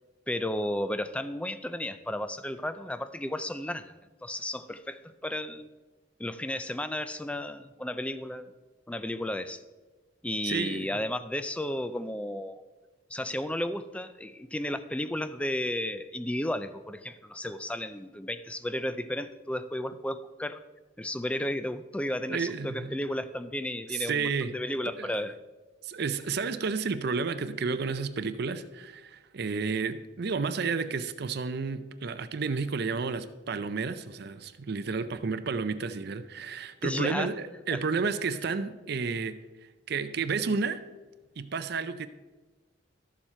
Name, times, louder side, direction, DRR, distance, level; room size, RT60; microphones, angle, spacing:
voice 1, 0.3-3.9 4.2-5.7 6.2-8.5 8.9-9.6 10.2-12.6 13.1-20.6 21.0-25.4 36.8-37.3 37.7-37.8, left 1 dB, 5° left, 12 dB, 0.4 m, -33 dB
voice 2, 10.4-10.9 22.3-22.9 23.9-24.5 25.0-25.1 25.8-40.8 41.4-42.1, right 5 dB, 55° right, 11 dB, 0.5 m, -31 dB
12.5 x 7.3 x 4.3 m, 1.2 s
head